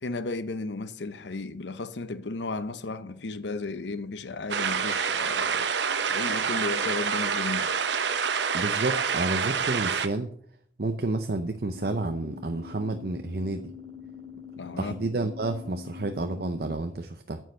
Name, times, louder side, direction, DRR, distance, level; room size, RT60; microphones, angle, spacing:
voice 1, 0.0-5.7 6.0-7.7 14.6-15.0, left 3 dB, 90° left, 0.7 m, -34 dB
sound 1, 4.5-10.1, right 6 dB, 90° right, 0.9 m, -27 dB
voice 2, 8.5-10.3 10.8-13.6 14.8-17.4, right 2 dB, 60° right, 0.7 m, -30 dB
sound 2, 11.7-16.7, left 7 dB, 25° left, 2.7 m, -44 dB
9.4 x 6.4 x 6.5 m
head